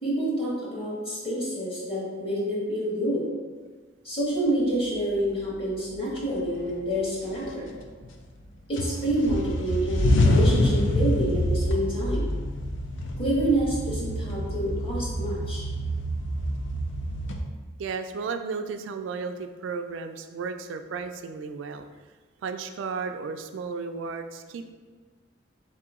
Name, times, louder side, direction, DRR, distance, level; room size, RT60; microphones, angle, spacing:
voice 1, 0.0-3.3 4.0-7.7 8.7-12.3 13.2-15.6, right 1 dB, 30° left, -6 dB, 1.2 m, -28 dB
sound 1, 5.5-5.6 6.2-6.9 7.3-8.4 8.7-17.4, left 1 dB, 85° left, 0.4 m, -26 dB
voice 2, 17.8-21.9 22.4-24.7, right 5 dB, 85° right, 8 dB, 0.3 m, -34 dB
4.1 x 2.8 x 3.6 m, 1.4 s
head